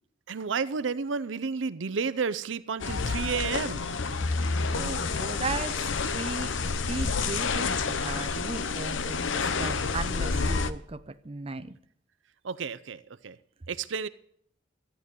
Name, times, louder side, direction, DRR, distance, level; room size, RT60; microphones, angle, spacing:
voice 1, 0.3-4.0 12.4-13.4 13.7-14.1, right 5 dB, 70° right, 0.6 m, -31 dB
sound 1, 2.8-10.7, left 4 dB, 75° left, 0.8 m, -29 dB
voice 2, 4.7-6.5 6.9-11.8, right 3 dB, 30° right, 0.6 m, -36 dB
14.0 x 9.0 x 8.1 m
head